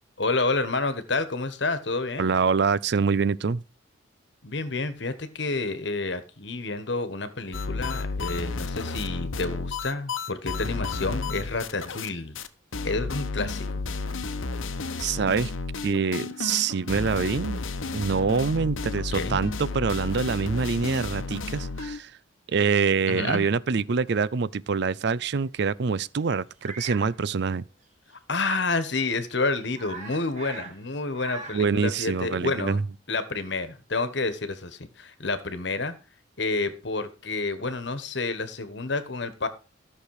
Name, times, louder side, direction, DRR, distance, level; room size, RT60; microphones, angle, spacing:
voice 1, 0.2-2.3 4.4-12.4 12.8-13.8 19.1-19.4 23.1-23.5 28.3-32.8 33.1-35.9 36.4-39.5, left 3 dB, 60° left, 1.4 m, -29 dB
voice 2, 2.2-3.6 15.0-15.5 15.8-17.6 17.9-22.1 22.5-27.6 31.5-32.8, right 5 dB, 60° right, 0.5 m, -25 dB
sound 1, 7.5-12.1 12.3-12.5 12.7-22.0, left 4 dB, 90° left, 0.9 m, -32 dB
Bird vocalization bird call bird song, 26.6-27.1 28.4-28.8 29.3-29.4 29.6-30.8 31.0-31.7, right 4 dB, 40° right, 2.0 m, -40 dB
13.5 x 6.6 x 4.8 m
head